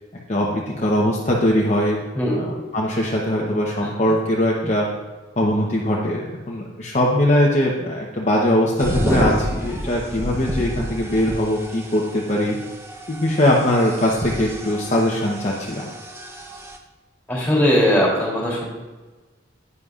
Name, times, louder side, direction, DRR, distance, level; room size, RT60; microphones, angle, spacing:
voice 1, 0.3-2.0 2.3-4.9 5.4-12.6 13.1-15.9, left 1 dB, 40° left, -3 dB, 0.9 m, -21 dB
voice 2, 3.8-4.1 17.3-18.6, equal, 10° left, -6 dB, 3.1 m, -20 dB
sound 1, 8.8-16.8, equal, 15° right, 0.7 m, -30 dB
10.5 x 9.5 x 2.5 m, 1.3 s
head